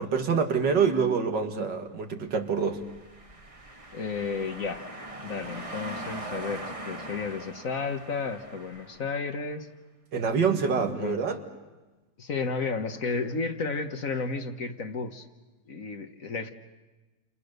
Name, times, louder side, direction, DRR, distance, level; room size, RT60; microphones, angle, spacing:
voice 1, 0.0-2.8 10.1-11.4, right 6 dB, 80° right, 5 dB, 2.5 m, -26 dB
sound 1, 2.6-9.3, right 1 dB, 20° right, 1.6 m, -41 dB
voice 2, 3.9-4.9 5.2-9.7 11.0-11.2 12.2-15.3 15.7-16.5, left 4 dB, 50° left, 7 dB, 1.7 m, -32 dB
29.5 x 29.0 x 6.7 m, 1.2 s
omnidirectional pair, 1.9 m